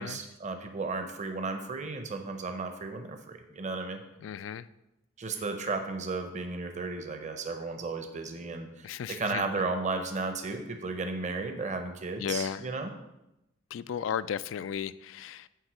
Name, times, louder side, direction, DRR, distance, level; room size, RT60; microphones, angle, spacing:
voice 1, 0.0-4.0 5.2-12.9, right 3 dB, 35° right, 6 dB, 0.7 m, -34 dB
voice 2, 4.2-4.7 8.8-9.4 12.2-12.7 13.7-15.5, left 8 dB, 65° left, 15 dB, 0.3 m, -34 dB
9.5 x 3.6 x 6.2 m, 0.91 s
head